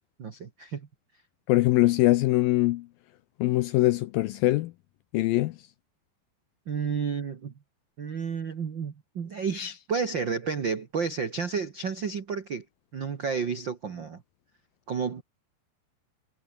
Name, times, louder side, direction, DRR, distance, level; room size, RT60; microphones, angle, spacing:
voice 1, 0.2-0.9 6.7-7.5 8.0-12.6 12.9-14.2 14.9-15.2, right 5 dB, 70° right, 1.1 m, -31 dB
voice 2, 1.5-2.9 3.4-4.7 5.1-5.6, left 17 dB, 80° left, 2.1 m, -22 dB
omnidirectional pair, 4.8 m